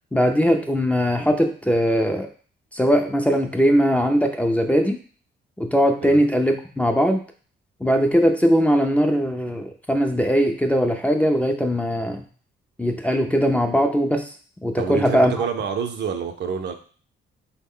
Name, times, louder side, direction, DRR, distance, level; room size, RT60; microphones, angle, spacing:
voice 1, 0.1-2.3 2.7-5.0 5.6-7.2 7.8-12.3 12.8-14.3 14.6-15.5, equal, 5° left, 2 dB, 0.4 m, -20 dB
voice 2, 14.8-16.7, right 6 dB, 60° right, 5 dB, 0.6 m, -27 dB
3.7 x 2.1 x 3.6 m, 0.42 s
cardioid pair, 90°, 20 cm